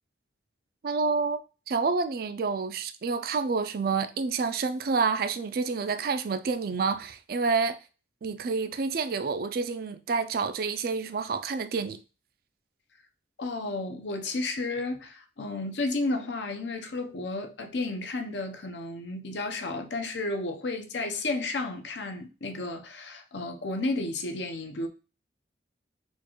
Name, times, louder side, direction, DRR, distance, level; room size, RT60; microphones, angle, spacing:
voice 1, 0.8-1.4 1.7-7.8 8.2-12.0, right 4 dB, 55° right, 0.4 m, -28 dB
voice 2, 13.4-24.9, left 2 dB, 80° left, 0.7 m, -32 dB
4.4 x 2.4 x 3.0 m
head